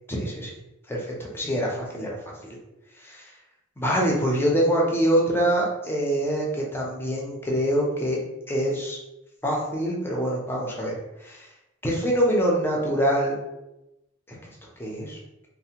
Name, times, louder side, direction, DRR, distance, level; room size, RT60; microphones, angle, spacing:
voice 1, 0.1-0.5 0.9-2.3 3.0-3.3 3.8-8.2 8.5-9.0 9.4-11.5 11.8-13.4 14.8-15.2, equal, 10° left, -2 dB, 0.5 m, -25 dB
3.2 x 2.1 x 2.8 m, 0.92 s
head